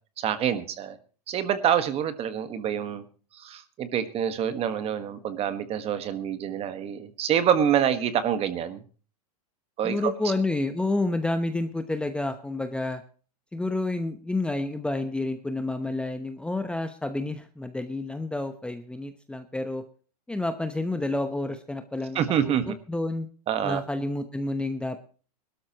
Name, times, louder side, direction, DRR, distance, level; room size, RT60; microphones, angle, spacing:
voice 1, 0.2-1.0 1.3-3.0 3.3-8.8 9.8-10.1 22.1-22.7 23.5-23.8, right 9 dB, 30° right, 11 dB, 1.5 m, -26 dB
voice 2, 9.8-13.0 13.5-19.8 20.3-22.2 22.4-22.5 22.9-23.3 23.6-25.0, left 2 dB, 5° left, 8 dB, 0.9 m, -29 dB
21.0 x 12.5 x 3.0 m, 0.38 s
hypercardioid pair, 125°, 20 cm